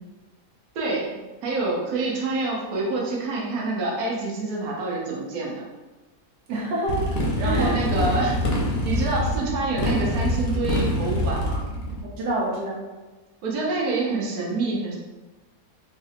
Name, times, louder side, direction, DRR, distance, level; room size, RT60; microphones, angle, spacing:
voice 1, 0.7-1.2 1.4-5.6 7.4-8.3 8.8-11.6 13.4-15.0, right 3 dB, 70° right, -3 dB, 1.3 m, -27 dB
voice 2, 6.5-8.1 12.0-12.9, right 1 dB, 85° right, -4 dB, 1.3 m, -28 dB
Motorcycle, 6.9-12.0, left 1 dB, 90° left, 1.3 m, -25 dB
4.0 x 2.4 x 2.7 m, 1.2 s
omnidirectional pair, 1.7 m